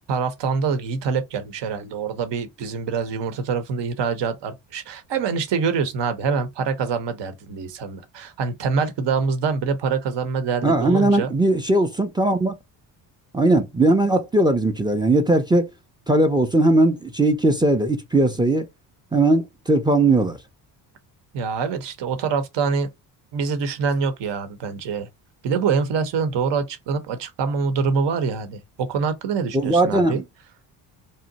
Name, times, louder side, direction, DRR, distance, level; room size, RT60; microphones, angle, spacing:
voice 1, 0.1-11.3 21.3-22.9 23.3-25.1 25.4-30.2, right 5 dB, 60° right, 0.9 m, -25 dB
voice 2, 10.6-12.5 13.3-15.7 16.1-18.7 19.1-20.4 29.5-30.2, right 2 dB, 10° right, 0.5 m, -19 dB
2.7 x 2.1 x 3.9 m
supercardioid pair, 65°, 48 cm